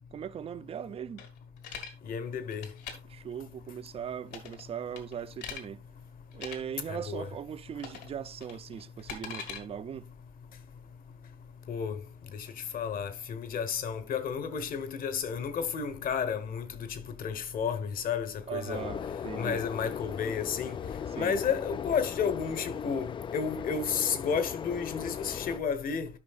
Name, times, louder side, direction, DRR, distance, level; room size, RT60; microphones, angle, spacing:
voice 1, 0.1-1.2 3.1-5.8 6.3-10.1 18.5-19.6 21.2-21.4, right 8 dB, 35° right, 0.4 m, -39 dB
sound 1, 1.2-1.9 2.5-2.9 4.3-4.6 5.0-5.6 6.3-6.6 7.8-8.1 8.4-9.6, left 7 dB, 80° left, 1.8 m, -41 dB
voice 2, 2.0-2.7 6.9-7.3 11.7-12.0 12.7-18.9 19.4-20.8 21.1-26.1, left 6 dB, 55° left, 1.1 m, -32 dB
sound 2, 18.7-25.6, left 7 dB, 30° left, 0.4 m, -38 dB
12.5 x 5.3 x 2.4 m
cardioid pair, 110°, 17 cm